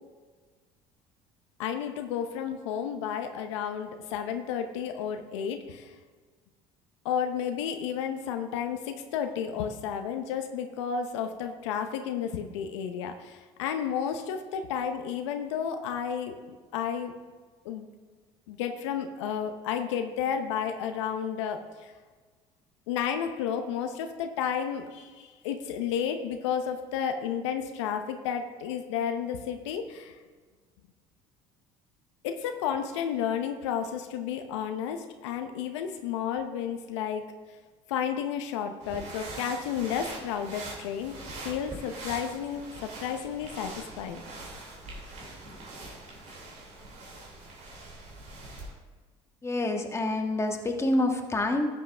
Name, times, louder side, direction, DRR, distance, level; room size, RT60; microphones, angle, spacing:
voice 1, 1.6-5.9 7.0-17.1 17.6-17.9 18.5-21.9 22.9-30.1 32.2-37.2 37.9-41.2 41.4-44.2, left 8 dB, 90° left, 6 dB, 0.8 m, -32 dB
sound 1, 38.8-48.7, right 2 dB, 55° right, 3.1 m, -43 dB
voice 2, 49.4-51.7, left 1 dB, 20° left, 3 dB, 1.5 m, -27 dB
13.0 x 7.5 x 3.4 m, 1.4 s
supercardioid pair, 80°, 15 cm